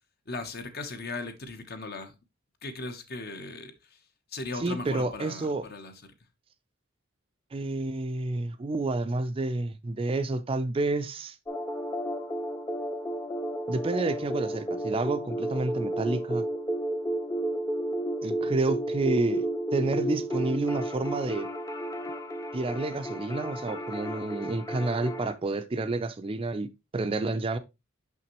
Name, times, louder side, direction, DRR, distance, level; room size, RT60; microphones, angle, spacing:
voice 1, 0.3-2.1 2.6-3.7 4.3-5.9, left 3 dB, 50° left, 0.9 m, -37 dB
voice 2, 4.5-5.7 7.5-11.4 13.7-16.5 18.2-21.5 22.5-26.7 26.9-27.6, right 2 dB, 25° right, 0.4 m, -29 dB
sound 1, 11.5-25.3, right 1 dB, 15° left, 0.6 m, -32 dB
5.9 x 5.8 x 3.0 m
head